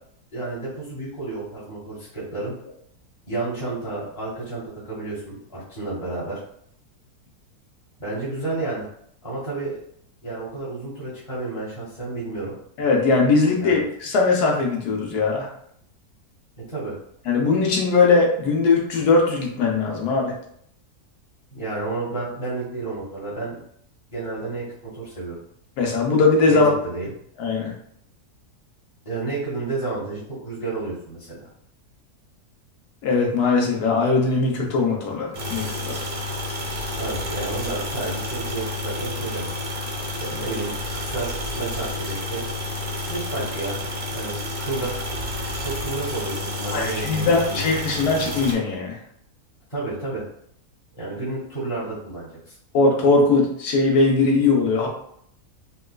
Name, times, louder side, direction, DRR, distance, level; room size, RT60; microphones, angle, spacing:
voice 1, 0.3-2.5 3.3-6.4 8.0-8.9 9.2-9.8 10.2-12.5 13.6-13.8 16.7-17.0 21.5-23.6 24.1-25.4 26.5-27.1 29.0-31.5 37.0-39.5 40.1-42.4 43.0-43.8 44.1-45.1 45.6-47.6 49.7-50.2 51.0-52.6, right 3 dB, 25° left, -9 dB, 0.9 m, -31 dB
voice 2, 12.8-15.5 17.3-20.3 25.8-26.7 27.4-27.7 33.0-36.0 46.7-49.0 52.7-54.9, left 3 dB, 85° left, 0 dB, 1.3 m, -20 dB
sound 1, 35.3-48.5, left 1 dB, 50° right, 0.8 m, -30 dB
4.1 x 2.3 x 2.2 m, 0.68 s
omnidirectional pair, 1.6 m